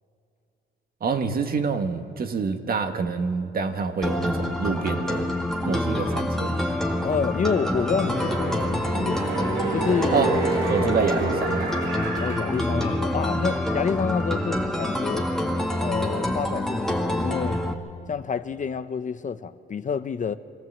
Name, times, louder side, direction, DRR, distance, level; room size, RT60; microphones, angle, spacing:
voice 1, 1.0-5.4 5.6-6.5 10.1-10.3 10.7-11.7, right 5 dB, 50° right, 1.7 m, -27 dB
sound 1, 4.0-17.7, left 1 dB, ahead, 2.0 m, -26 dB
voice 2, 7.0-9.2 9.7-10.3 10.8-11.0 12.2-15.3 15.8-17.6 18.1-20.3, left 6 dB, 40° left, 0.8 m, -28 dB
sound 2, 7.7-13.3 13.7-13.8, right 3 dB, 85° right, 4.8 m, -30 dB
25.5 x 14.5 x 7.9 m
cardioid pair, 90°, 20 cm